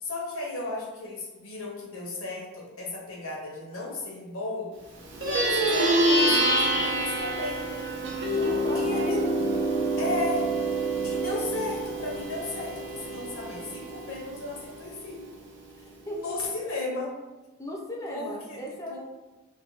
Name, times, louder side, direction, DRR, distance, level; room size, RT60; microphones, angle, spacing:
voice 1, 0.0-4.7 5.2-7.7 8.7-9.2 10.0-10.5 11.0-15.3 16.0-17.1 18.1-18.6 18.9-19.0, left 2 dB, 75° left, -2 dB, 0.7 m, -34 dB
Plucked string instrument, 5.1-14.8, right 1 dB, 60° right, 0.5 m, -27 dB
voice 2, 8.3-9.4 15.9-16.4 17.6-19.0, equal, 15° left, -1 dB, 0.4 m, -37 dB
2.4 x 2.2 x 2.8 m, 1.1 s
head